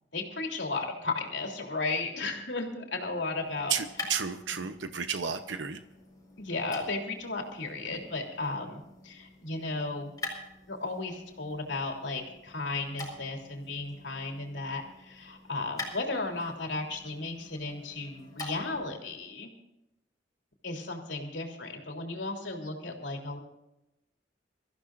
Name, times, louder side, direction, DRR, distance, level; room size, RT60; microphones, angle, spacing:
voice 1, 0.1-3.7 6.4-10.1 10.7-19.5 20.6-23.4, left 3 dB, 75° left, 1 dB, 3.3 m, -35 dB
sound 1, 3.3-18.9, left 2 dB, 20° left, 4.8 m, -46 dB
voice 2, 3.7-5.8, right 7 dB, 85° right, 8 dB, 0.8 m, -32 dB
25.0 x 15.0 x 2.6 m, 0.91 s
head